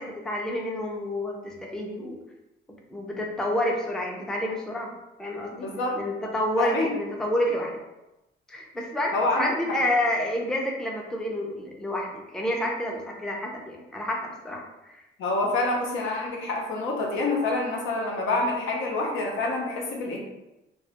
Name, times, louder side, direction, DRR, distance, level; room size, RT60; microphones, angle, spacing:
voice 1, 0.0-2.2 2.9-5.7 5.9-7.8 8.5-15.0, left 1 dB, 5° left, -1 dB, 0.4 m, -29 dB
voice 2, 5.5-6.0 6.6-6.9 9.1-9.5 15.2-20.2, left 2 dB, 80° left, -1 dB, 0.6 m, -27 dB
2.2 x 2.0 x 2.8 m, 0.97 s
cardioid pair, 90°, 20 cm